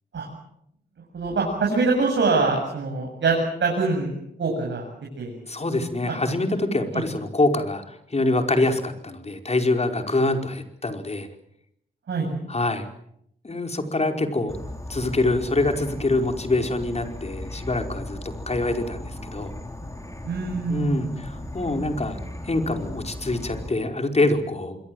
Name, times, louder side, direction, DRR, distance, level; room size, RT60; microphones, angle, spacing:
voice 1, 1.1-4.1 4.4-4.9 5.2-5.4 6.1-6.2 6.9-7.0 12.1-12.3 20.2-21.2, right 3 dB, 75° right, -1 dB, 8.0 m, -24 dB
voice 2, 5.5-11.3 12.5-12.9 13.4-14.6 14.9-19.5 20.7-24.8, left 2 dB, 35° left, 5 dB, 4.9 m, -25 dB
Insect / Frog, 14.5-23.7, left 1 dB, 15° left, 5.6 m, -37 dB
26.5 x 24.0 x 7.9 m, 0.75 s
cardioid pair, 65°, 19 cm